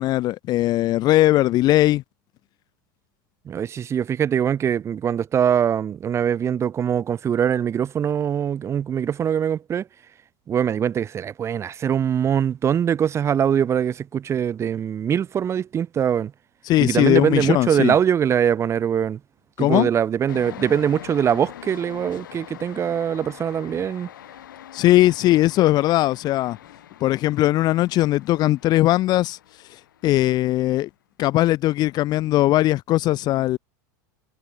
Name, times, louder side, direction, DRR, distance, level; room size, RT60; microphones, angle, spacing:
voice 1, 0.0-2.0 16.7-17.9 19.6-19.9 24.7-26.6 27.0-29.4 30.0-30.9 31.2-33.6, left 16 dB, 40° left, 0.6 m, -19 dB
voice 2, 3.5-9.9 10.5-16.3 16.8-19.2 19.6-24.1, right 8 dB, 25° right, 0.8 m, -22 dB
sound 1, 20.3-30.6, left 11 dB, 85° left, 4.3 m, -43 dB
hypercardioid pair, 110°, 10 cm